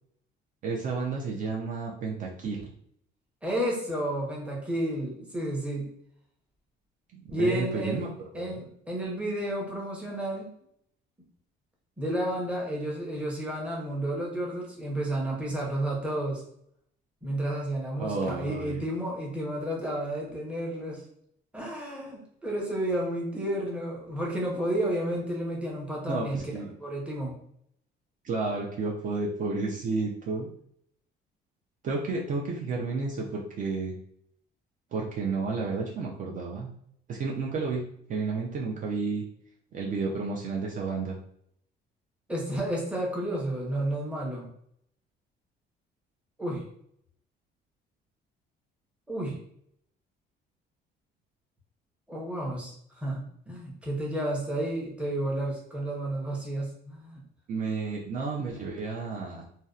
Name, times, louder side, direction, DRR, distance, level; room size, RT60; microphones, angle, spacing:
voice 1, 0.6-2.7 7.1-8.1 8.3-8.6 18.0-18.8 26.1-26.7 28.2-30.5 31.8-33.9 34.9-36.7 37.1-37.8 38.1-39.2 39.7-41.2 57.5-59.4, right 4 dB, 45° right, -2 dB, 0.4 m, -31 dB
voice 2, 3.4-5.9 7.3-10.5 12.0-16.4 17.2-21.0 21.5-26.4 26.8-27.3 42.3-44.5 46.4-46.6 49.1-49.4 52.1-57.2, right 1 dB, 5° right, -3 dB, 0.7 m, -31 dB
2.6 x 2.1 x 2.3 m, 0.68 s
cardioid pair, 135°, 19 cm